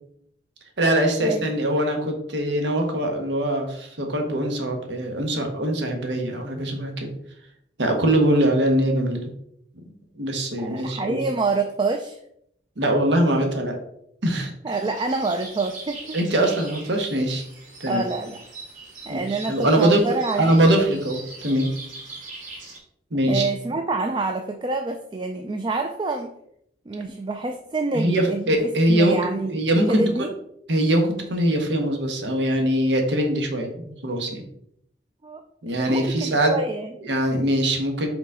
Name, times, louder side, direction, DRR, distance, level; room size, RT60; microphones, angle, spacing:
voice 1, 0.8-7.1 7.8-9.3 9.7-9.8 10.1-11.2 12.8-13.8 14.2-14.5 16.1-17.5 17.8-18.0 19.1-20.0 20.4-21.7 23.1-23.5 27.9-29.2 29.5-30.3 30.7-34.4 35.6-36.6 37.0-38.1, right 1 dB, 85° right, 3 dB, 1.3 m, -22 dB
voice 2, 10.6-12.2 14.6-16.2 17.9-18.4 19.1-20.5 23.3-26.3 26.9-29.6 29.9-30.3 35.2-35.4 35.7-36.9, right 3 dB, 25° right, 5 dB, 0.4 m, -27 dB
sound 1, 14.7-22.8, right 3 dB, 45° right, 2.4 m, -41 dB
5.2 x 4.0 x 4.8 m, 0.73 s
head